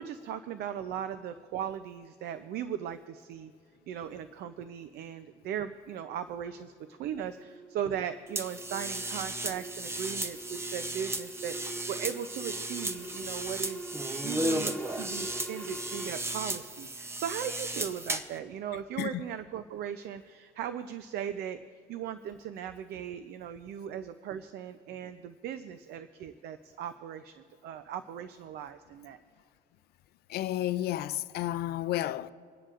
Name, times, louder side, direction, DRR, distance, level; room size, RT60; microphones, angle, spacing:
voice 1, 0.0-3.5 3.9-21.6 21.9-29.2, right 9 dB, 75° right, 0.6 m, -38 dB
sound 1, 6.3-16.1, right 1 dB, 5° left, 2.2 m, -45 dB
sound 2, 8.3-18.4, right 1 dB, 15° right, 0.7 m, -35 dB
voice 2, 30.3-32.3, left 13 dB, 70° left, 0.5 m, -31 dB
28.0 x 10.0 x 2.5 m
cardioid pair, 110°, 17 cm